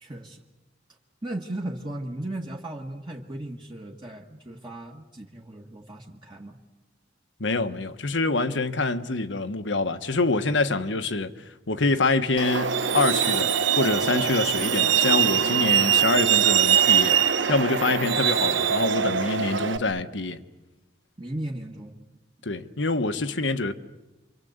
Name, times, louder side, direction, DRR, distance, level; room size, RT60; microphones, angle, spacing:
voice 1, 0.0-0.4 1.2-6.6 21.2-22.0, right 1 dB, 25° right, 1.7 m, -36 dB
voice 2, 7.4-17.2 17.5-20.4 22.4-23.7, left 3 dB, 75° left, 1.4 m, -26 dB
Truck, 12.4-19.8, right 8 dB, 80° right, 1.1 m, -22 dB
28.5 x 25.0 x 8.1 m
head